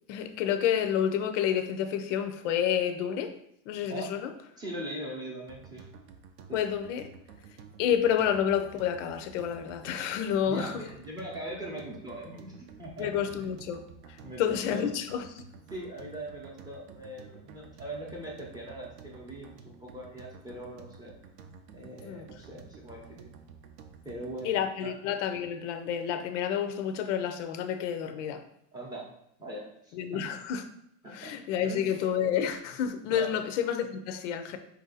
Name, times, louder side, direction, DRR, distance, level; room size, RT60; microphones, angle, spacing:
voice 1, 0.1-3.4 3.7-4.3 6.5-7.1 7.8-10.8 13.0-13.8 14.1-15.5 22.0-22.3 24.4-28.4 29.9-30.7 31.1-34.6, left 9 dB, 70° left, 8 dB, 0.6 m, -29 dB
voice 2, 4.6-5.9 6.5-6.6 10.4-12.5 12.8-13.5 14.2-14.8 15.7-21.1 21.7-23.3 24.0-24.9 28.7-29.0 29.4-30.2 31.0-31.3 31.6-32.0 33.1-33.4, right 1 dB, 10° right, -3 dB, 0.6 m, -41 dB
sound 1, 5.5-24.7, right 6 dB, 50° right, 0.5 m, -51 dB
4.4 x 2.6 x 3.9 m, 0.73 s
supercardioid pair, 165°, 37 cm